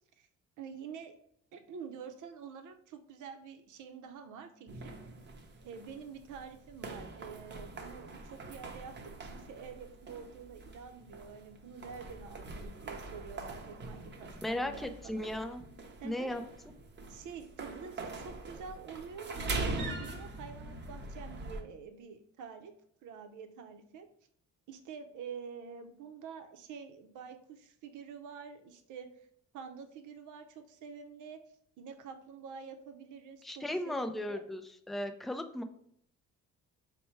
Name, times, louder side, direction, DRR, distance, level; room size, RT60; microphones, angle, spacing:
voice 1, 0.6-1.2 1.5-5.0 5.6-15.2 16.0-16.3 17.1-22.7 23.0-24.1 24.7-29.3 29.5-31.4 31.8-34.4, right 6 dB, 80° right, 7 dB, 0.6 m, -47 dB
sound 1, 4.7-21.6, right 2 dB, 35° right, 0.7 m, -43 dB
voice 2, 14.4-15.6 16.0-16.4 33.4-34.6 34.9-35.6, left 1 dB, ahead, 7 dB, 0.3 m, -36 dB
4.4 x 2.2 x 4.2 m, 0.70 s
cardioid pair, 90°, 30 cm